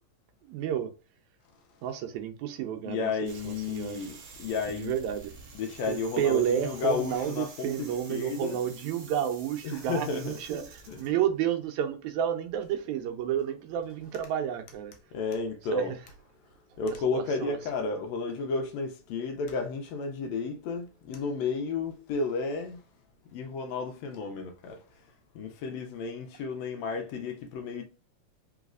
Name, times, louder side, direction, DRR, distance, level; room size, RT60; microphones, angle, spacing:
voice 1, 0.4-0.9 1.8-4.1 4.7-5.3 5.9-14.9 15.7-16.0 17.1-17.6, right 10 dB, 85° right, 2.0 m, -31 dB
voice 2, 2.9-4.9 5.6-8.7 9.6-10.4 10.9-11.0 15.1-15.9 16.8-22.8 23.3-25.0 25.4-27.8, left 4 dB, 75° left, 1.8 m, -32 dB
sound 1, 3.2-11.1, right 4 dB, 65° right, 0.9 m, -49 dB
4.1 x 3.9 x 2.5 m
omnidirectional pair, 3.3 m